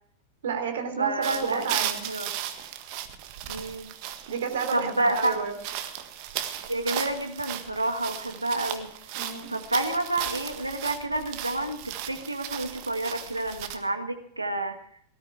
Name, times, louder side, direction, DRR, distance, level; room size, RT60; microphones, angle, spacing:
voice 1, 0.4-2.0 4.3-5.5 9.2-9.5, right 6 dB, 60° right, 5 dB, 3.3 m, -30 dB
voice 2, 1.0-2.3 3.5-3.9 4.7-5.4 6.7-8.9 9.5-14.8, right 2 dB, 85° right, 5 dB, 1.9 m, -29 dB
sound 1, 1.2-13.8, right 11 dB, 45° right, 1.7 m, -36 dB
18.5 x 13.0 x 4.8 m, 0.66 s
figure-of-eight pair, 90°, 0 cm